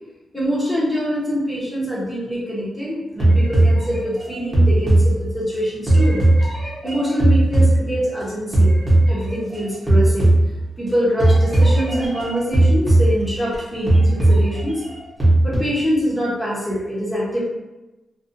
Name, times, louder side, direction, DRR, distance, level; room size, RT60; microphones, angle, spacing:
voice 1, 0.3-6.2 6.6-8.8 9.1-10.3 10.8-14.8 15.4-17.4, equal, 10° left, -7 dB, 0.8 m, -24 dB
sound 1, 3.2-5.5 5.9-8.2 8.5-9.6 9.9-10.9 11.2-13.6 13.9-15.6, right 1 dB, 25° right, 0.9 m, -17 dB
2.5 x 2.3 x 2.6 m, 1.0 s
wide cardioid pair, 160°, 0 cm